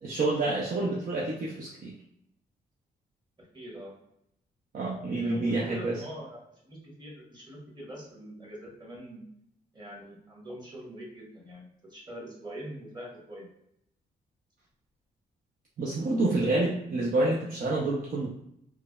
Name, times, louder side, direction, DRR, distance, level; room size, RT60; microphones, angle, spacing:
voice 1, 0.0-1.9 4.7-6.0 15.8-18.3, right 2 dB, 50° right, -4 dB, 0.6 m, -28 dB
voice 2, 0.7-1.0 3.4-3.9 5.1-9.2 9.7-13.5, equal, 25° right, -4 dB, 1.4 m, -43 dB
3.1 x 2.2 x 2.3 m, 0.76 s
supercardioid pair, 55°, 19 cm